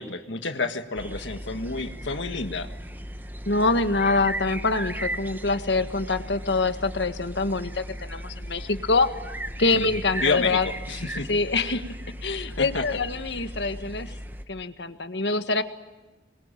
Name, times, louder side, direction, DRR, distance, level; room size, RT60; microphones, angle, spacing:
voice 1, 0.0-2.7 9.7-11.3 12.6-12.8, left 4 dB, 85° left, 7 dB, 1.7 m, -30 dB
sound 1, 1.0-14.4, equal, 10° right, 1.3 m, -36 dB
voice 2, 3.4-9.1 9.6-10.7 11.3-11.8 12.2-14.1 14.5-15.6, left 3 dB, 70° left, 9 dB, 1.7 m, -25 dB
27.0 x 22.5 x 8.9 m, 1.2 s
head